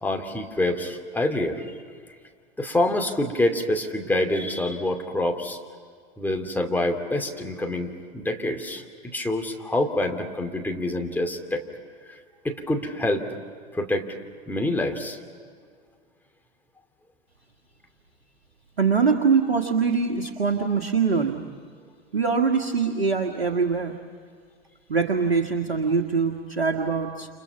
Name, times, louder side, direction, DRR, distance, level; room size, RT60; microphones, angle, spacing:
voice 1, 0.0-1.6 2.6-5.6 6.2-11.6 12.1-12.2 12.4-13.3 13.7-14.1 14.5-15.2, left 1 dB, 5° left, 3 dB, 2.7 m, -26 dB
voice 2, 18.8-21.4 22.1-24.0 24.9-27.3, right 5 dB, 80° right, 2 dB, 1.8 m, -23 dB
30.0 x 29.5 x 5.9 m, 2.1 s
figure-of-eight pair, 90°, 30 cm